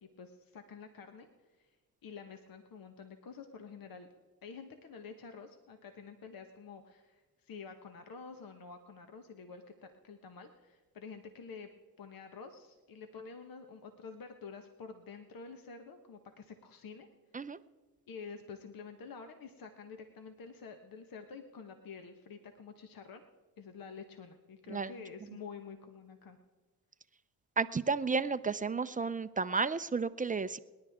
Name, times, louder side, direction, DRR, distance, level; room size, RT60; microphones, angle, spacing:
voice 1, 0.0-1.3 1.6-1.8 2.0-4.1 4.4-11.7 12.0-17.1 18.1-23.3 23.6-26.4, left 5 dB, 55° left, 6 dB, 1.3 m, -49 dB
voice 2, 27.6-30.6, right 4 dB, 20° right, 13 dB, 0.6 m, -32 dB
27.5 x 10.5 x 3.6 m, 1.3 s
supercardioid pair, 60°, 41 cm